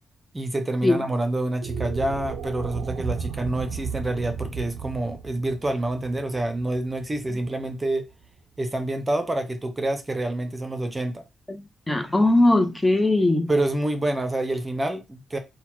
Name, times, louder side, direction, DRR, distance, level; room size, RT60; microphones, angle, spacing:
voice 1, 0.3-8.1 8.6-11.2 13.5-15.4, right 1 dB, 25° right, 0.9 m, -27 dB
sound 1, 1.6-7.9, right 6 dB, 85° right, 0.5 m, -34 dB
voice 2, 11.5-13.5, left 2 dB, 15° left, 0.9 m, -20 dB
4.1 x 2.3 x 4.5 m
cardioid pair, 70°, 0 cm